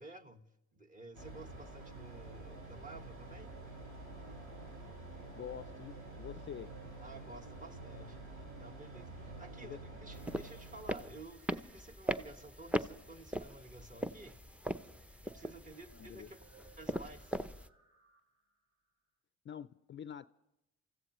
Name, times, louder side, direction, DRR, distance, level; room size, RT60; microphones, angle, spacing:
voice 1, 0.0-3.6 7.0-8.2 8.6-14.4 15.2-16.4 16.8-17.3, right 2 dB, 25° right, 1.5 m, -52 dB
sound 1, 1.1-11.2, right 2 dB, 80° right, 6.5 m, -49 dB
sound 2, 4.0-18.5, right 4 dB, 45° right, 3.8 m, -65 dB
voice 2, 5.4-6.7 9.6-9.8 15.9-16.3 19.4-20.3, left 9 dB, 40° left, 0.4 m, -46 dB
sound 3, 10.1-17.7, right 1 dB, 5° right, 0.6 m, -40 dB
28.5 x 15.0 x 3.1 m
cardioid pair, 90°, 30 cm